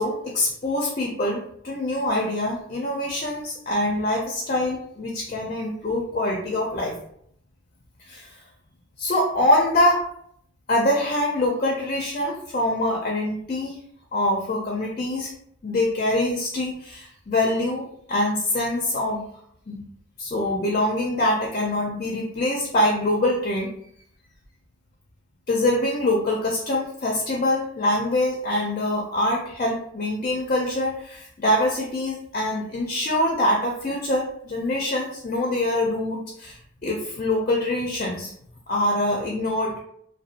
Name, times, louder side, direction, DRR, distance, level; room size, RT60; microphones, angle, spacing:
voice 1, 0.0-6.9 8.0-8.4 9.0-10.0 10.7-13.8 14.1-15.3 15.6-19.2 19.7-19.8 20.2-23.7 25.5-38.3 38.7-39.8, left 1 dB, 40° left, -1 dB, 0.4 m, -24 dB
2.7 x 2.1 x 2.4 m, 0.69 s
head